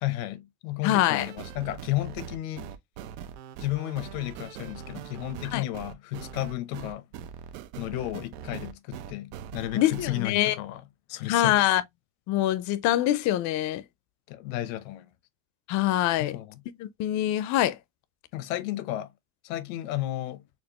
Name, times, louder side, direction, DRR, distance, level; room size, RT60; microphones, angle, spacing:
voice 1, 0.0-2.7 3.6-7.0 7.8-10.8 11.1-11.7 14.3-15.1 16.2-16.6 18.3-19.1 19.4-20.4, left 15 dB, 90° left, 0.8 m, -33 dB
voice 2, 0.8-1.3 5.5-5.6 9.7-10.6 11.3-11.8 12.3-13.8 15.7-16.4 16.8-17.8, left 13 dB, 45° left, 0.5 m, -24 dB
sound 1, 1.2-10.2, right 9 dB, 80° right, 0.8 m, -41 dB
4.4 x 2.5 x 2.8 m
cardioid pair, 135°, 40 cm